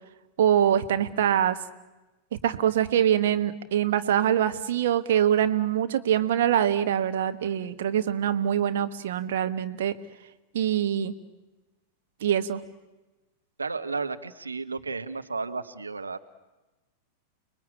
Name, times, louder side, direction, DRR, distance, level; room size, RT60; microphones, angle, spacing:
voice 1, 0.4-1.6 2.4-9.9 10.5-11.1 12.2-12.6, right 10 dB, 55° right, 8 dB, 1.5 m, -24 dB
voice 2, 13.6-16.3, right 4 dB, 80° right, 8 dB, 1.2 m, -33 dB
30.0 x 20.0 x 8.8 m, 1.1 s
figure-of-eight pair, 90°, 0 cm